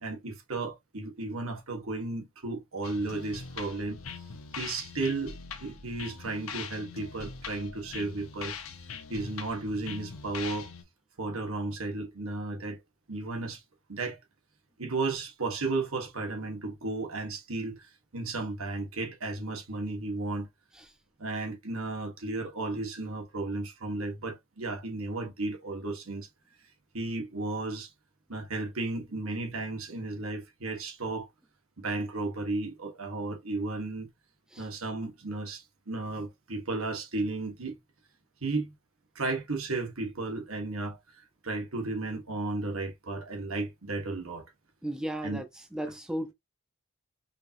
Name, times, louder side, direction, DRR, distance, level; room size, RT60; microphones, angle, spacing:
voice 1, 0.0-4.0 4.6-8.5 9.1-10.7 11.2-12.8 13.1-13.6 13.9-14.2 14.8-20.5 21.2-26.3 26.9-27.9 28.3-31.3 31.8-34.1 34.6-37.8 38.4-38.7 39.1-44.4 45.2-45.4, right 3 dB, 85° right, 1.5 m, -34 dB
sound 1, 2.8-10.8, left 5 dB, 80° left, 0.9 m, -42 dB
voice 2, 44.8-45.5 45.7-46.3, right 1 dB, 5° right, 0.5 m, -34 dB
5.0 x 2.9 x 2.6 m
head